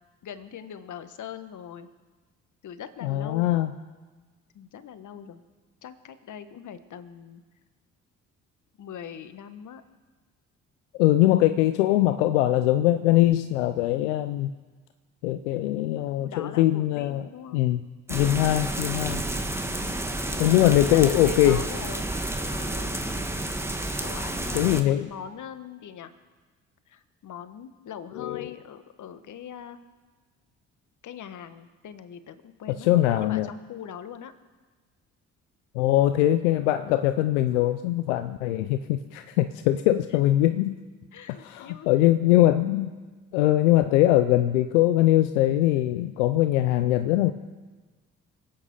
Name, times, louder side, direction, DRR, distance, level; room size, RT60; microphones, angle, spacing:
voice 1, 0.2-1.9 2.6-3.6 4.5-5.4 5.8-7.4 8.8-9.8 16.2-17.6 19.6-23.2 24.0-26.1 26.9-29.8 31.0-34.3 41.1-41.9, left 8 dB, 60° left, 11 dB, 1.4 m, -41 dB
voice 2, 3.0-3.7 11.0-14.5 15.2-17.3 17.5-17.8 18.1-19.2 20.4-21.6 24.5-25.1 28.2-28.5 32.8-33.5 35.7-40.8 41.3-42.9 43.3-47.3, left 14 dB, 90° left, 10 dB, 0.6 m, -22 dB
sound 1, 18.1-24.8, right 1 dB, 5° right, 1.9 m, -30 dB
24.5 x 9.0 x 5.5 m, 1.4 s
hypercardioid pair, 45°, 34 cm